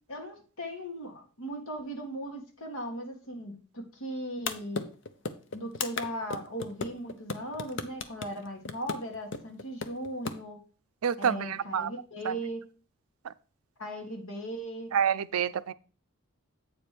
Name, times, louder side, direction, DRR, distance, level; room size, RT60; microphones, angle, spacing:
voice 1, 0.1-4.9 5.5-10.6 11.2-12.6 13.8-14.9, equal, 80° left, 1.8 m, -38 dB
sound 1, 4.5-10.4, left 4 dB, 55° left, 0.6 m, -34 dB
voice 2, 11.0-11.9 12.2-12.4 13.2-13.3 14.9-15.7, right 8 dB, 80° right, 0.4 m, -28 dB
8.3 x 4.4 x 5.0 m
head